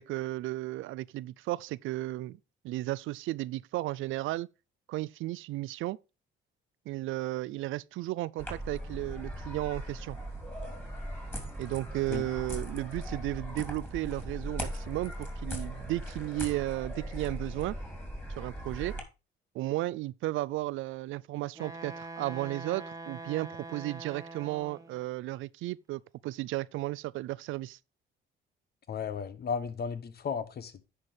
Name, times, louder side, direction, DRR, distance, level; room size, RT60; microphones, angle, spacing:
voice 1, 0.0-2.4 2.6-4.5 4.9-6.0 6.9-10.2 11.6-17.8 18.4-19.0 19.5-27.8, right 17 dB, 85° right, 0.4 m, -34 dB
sound 1, 8.4-19.0, right 1 dB, 10° left, 3.1 m, -39 dB
Wind instrument woodwind instrument, 21.6-25.0, right 3 dB, 15° right, 1.2 m, -43 dB
voice 2, 28.9-30.9, left 6 dB, 50° left, 1.1 m, -35 dB
9.9 x 4.4 x 5.0 m
cardioid pair, 90°, 20 cm